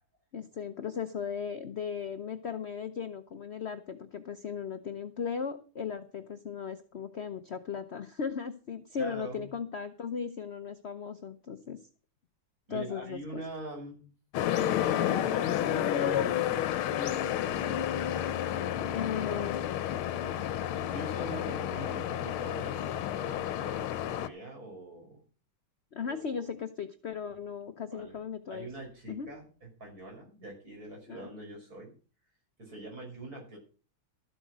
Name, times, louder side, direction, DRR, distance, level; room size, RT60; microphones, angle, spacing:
voice 1, 0.3-11.8 12.7-13.4 18.8-19.6 25.9-28.7 29.1-29.3 31.1-31.3, left 6 dB, 65° left, 9 dB, 0.6 m, -37 dB
voice 2, 9.0-9.5 12.7-14.1 15.1-16.9 17.4-17.8 20.2-25.2 26.0-26.5 27.2-27.4 27.9-28.2 28.5-31.9 32.6-33.6, right 1 dB, 45° right, -1 dB, 6.0 m, -44 dB
sound 1, 14.3-24.3, left 11 dB, 85° left, 1.7 m, -30 dB
13.5 x 7.9 x 6.1 m, 0.38 s
omnidirectional pair, 2.3 m